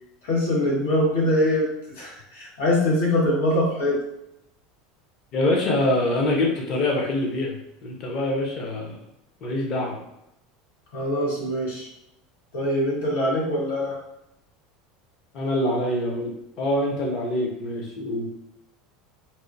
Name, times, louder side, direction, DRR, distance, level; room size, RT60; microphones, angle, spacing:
voice 1, 0.2-1.7 2.0-4.0 10.9-11.9 12.5-14.0, left 1 dB, 90° left, -4 dB, 1.4 m, -23 dB
voice 2, 5.3-7.6 7.8-9.0 9.4-10.0 15.3-16.3 16.6-18.3, left 1 dB, 40° left, -1 dB, 0.7 m, -24 dB
4.1 x 2.1 x 2.7 m, 0.84 s
supercardioid pair, 155°, 0 cm